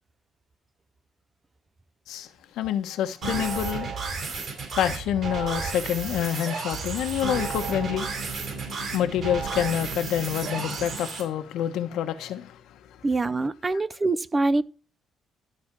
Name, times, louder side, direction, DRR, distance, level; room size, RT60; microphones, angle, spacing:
voice 1, 2.5-3.9 4.3-8.2 8.5-12.8 13.7-13.8, left 10 dB, 80° left, 1.1 m, -28 dB
sound 1, 3.2-11.2, right 4 dB, 50° right, 4.4 m, -32 dB
voice 2, 13.0-14.6, right 3 dB, 20° right, 0.4 m, -24 dB
12.0 x 4.3 x 5.8 m
cardioid pair, 145°, 0 cm